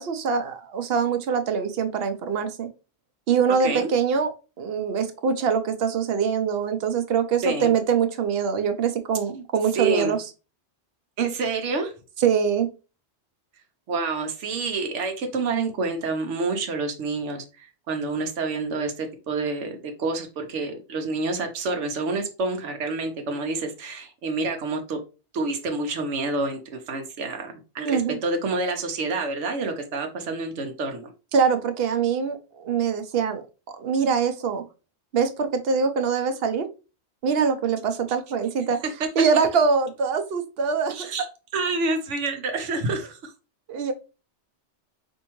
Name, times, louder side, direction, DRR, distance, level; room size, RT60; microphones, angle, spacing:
voice 1, 0.0-2.7 3.3-4.3 4.6-10.2 12.2-12.7 27.9-28.2 31.3-33.4 33.7-34.6 35.1-36.6 37.2-38.8 39.2-41.1 43.7-43.9, right 6 dB, 65° right, 8 dB, 0.8 m, -23 dB
voice 2, 9.7-10.2 11.2-11.9 13.9-25.0 25.3-31.1 40.9-41.3 41.5-43.3, right 3 dB, 85° right, 5 dB, 1.0 m, -28 dB
4.4 x 2.6 x 2.9 m, 0.32 s
omnidirectional pair, 1.2 m